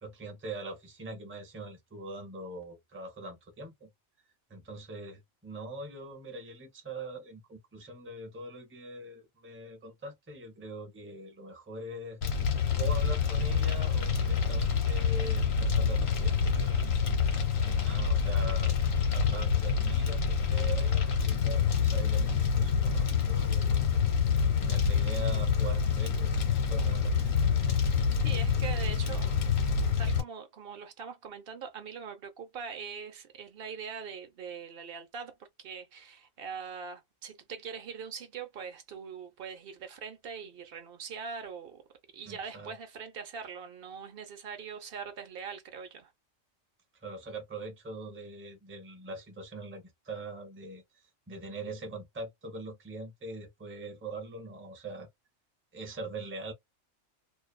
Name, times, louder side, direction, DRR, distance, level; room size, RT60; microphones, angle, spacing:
voice 1, 0.0-3.9 4.5-12.2 12.8-17.2 17.6-18.8 19.1-23.9 24.6-27.3 42.3-42.7 47.0-50.8 51.3-55.1 55.7-56.5, right 2 dB, 15° right, 0.5 m, -42 dB
Fire, 12.2-30.2, left 6 dB, 90° left, 1.3 m, -27 dB
voice 2, 28.2-29.5 30.0-41.8 42.1-46.1, right 6 dB, 55° right, 0.7 m, -42 dB
2.5 x 2.3 x 2.2 m
omnidirectional pair, 1.3 m